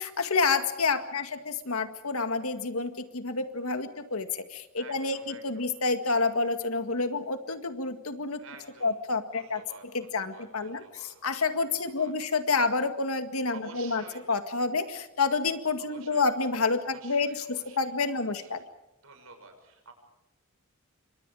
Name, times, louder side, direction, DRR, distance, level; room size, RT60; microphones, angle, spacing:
voice 1, 0.0-8.4 8.8-9.6 9.9-18.6, left 4 dB, 90° left, 8 dB, 2.0 m, -29 dB
voice 2, 4.8-5.7 8.4-8.9 9.3-11.2 11.7-12.1 13.5-14.2 15.8-16.2 16.8-18.5 19.0-19.9, right 3 dB, 75° right, 5 dB, 6.5 m, -50 dB
28.5 x 25.5 x 4.9 m, 0.90 s
head